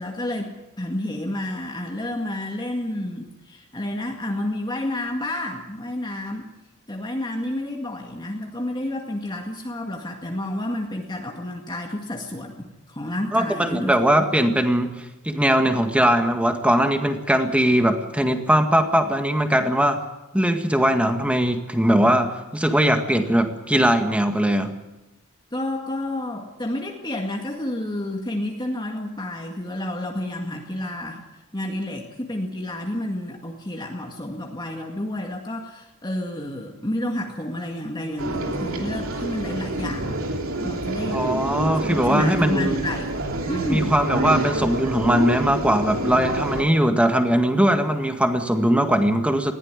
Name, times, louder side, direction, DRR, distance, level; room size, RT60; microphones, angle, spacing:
voice 1, 0.0-6.5 6.9-14.3 25.5-31.2 31.5-40.2 40.6-41.2 41.8-43.1 43.5-44.0, left 1 dB, 20° left, 1 dB, 2.0 m, -30 dB
voice 2, 13.3-20.0 20.3-24.7 41.1-42.9 43.7-49.5, equal, 5° right, 6 dB, 1.9 m, -20 dB
sound 1, 38.2-46.6, right 2 dB, 70° right, 3.1 m, -27 dB
20.5 x 15.5 x 9.8 m, 0.99 s
head